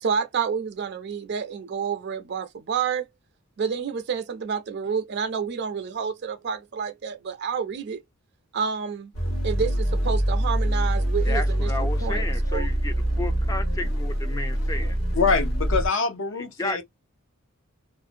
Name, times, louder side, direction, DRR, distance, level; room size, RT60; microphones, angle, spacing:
voice 1, 0.0-3.1 3.6-8.0 8.5-9.1 9.4-12.2 12.5-12.7, right 6 dB, 50° right, 0.4 m, -29 dB
sound 1, 9.1-15.9, right 1 dB, 85° left, 1.0 m, -24 dB
voice 2, 11.3-15.0 16.4-16.8, left 2 dB, 15° left, 0.3 m, -33 dB
voice 3, 15.1-16.8, left 4 dB, 60° left, 0.6 m, -24 dB
2.5 x 2.1 x 2.4 m
head